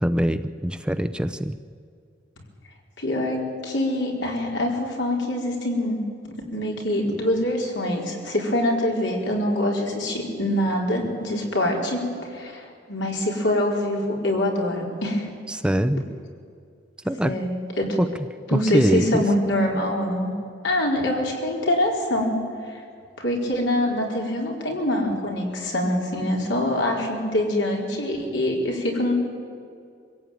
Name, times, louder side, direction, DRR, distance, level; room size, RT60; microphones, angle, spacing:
voice 1, 0.0-1.6 15.5-16.0 17.0-17.4 18.0-18.1 18.5-19.2, equal, 5° right, 10 dB, 0.5 m, -23 dB
voice 2, 3.0-3.4 3.6-15.3 17.2-18.0 18.5-20.3 20.6-22.4 23.2-29.1, left 1 dB, 75° left, -1 dB, 4.5 m, -24 dB
24.5 x 16.0 x 9.2 m, 2.3 s
head